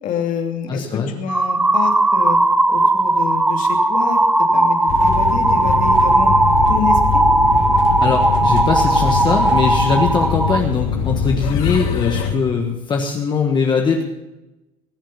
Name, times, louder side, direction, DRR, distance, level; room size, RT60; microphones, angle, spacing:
voice 1, 0.0-2.4 2.7-4.2 4.5-6.3 6.7-7.2, left 7 dB, 45° left, 3 dB, 2.8 m, -27 dB
voice 2, 0.7-1.1 8.0-14.0, left 5 dB, 25° left, 2 dB, 1.4 m, -21 dB
sound 1, 1.3-10.6, right 2 dB, 5° right, 0.6 m, -16 dB
sound 2, 4.9-12.3, left 7 dB, 75° left, 3.4 m, -23 dB
19.5 x 7.5 x 7.2 m, 1.0 s
cardioid pair, 140°, 19 cm